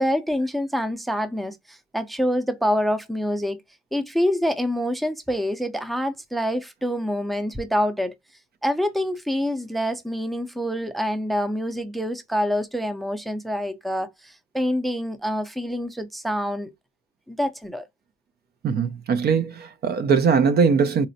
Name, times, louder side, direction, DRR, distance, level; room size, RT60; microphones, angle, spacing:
voice 1, 0.0-3.6 3.9-8.1 8.6-16.7 17.3-17.9, equal, ahead, 0.4 m, -26 dB
voice 2, 18.6-21.1, right 6 dB, 55° right, 0.5 m, -20 dB
4.0 x 2.0 x 2.6 m
cardioid pair, 90°, 20 cm